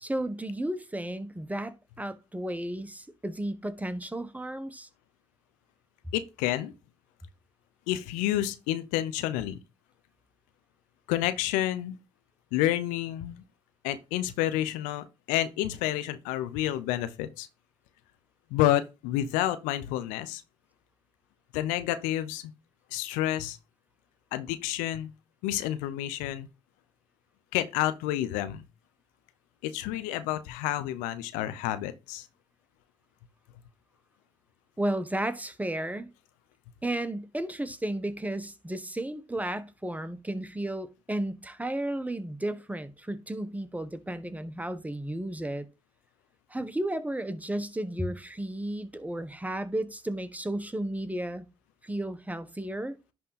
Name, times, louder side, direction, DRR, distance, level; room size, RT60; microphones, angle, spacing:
voice 1, 0.0-4.9 34.8-36.1 36.8-45.7 46.5-51.4 51.8-53.0, right 1 dB, 10° right, 1.2 m, -33 dB
voice 2, 6.1-6.7 7.9-9.6 11.1-12.0 12.5-13.4 13.8-17.5 18.5-20.4 21.5-22.5 22.9-23.6 24.3-25.1 25.4-26.5 27.5-28.6 29.6-32.3, left 13 dB, 90° left, 0.6 m, -29 dB
10.5 x 3.7 x 4.1 m
hypercardioid pair, 45°, 13 cm